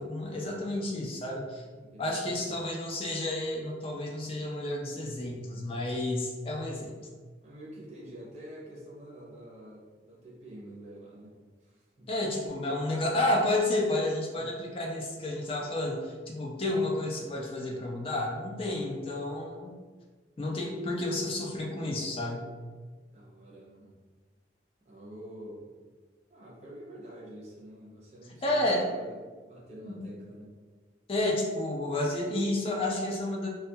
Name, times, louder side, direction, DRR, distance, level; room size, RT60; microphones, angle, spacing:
voice 1, 0.0-1.6 2.0-6.9 12.1-19.7 20.4-22.5 28.4-29.0 29.9-30.1 31.1-33.5, left 1 dB, 30° left, -2 dB, 0.4 m, -31 dB
voice 2, 1.7-2.6 7.4-12.1 12.6-13.2 14.3-14.5 23.1-23.9 24.8-25.7 26.3-30.5, right 1 dB, 35° right, -4 dB, 0.6 m, -47 dB
2.2 x 2.2 x 2.7 m, 1.4 s
head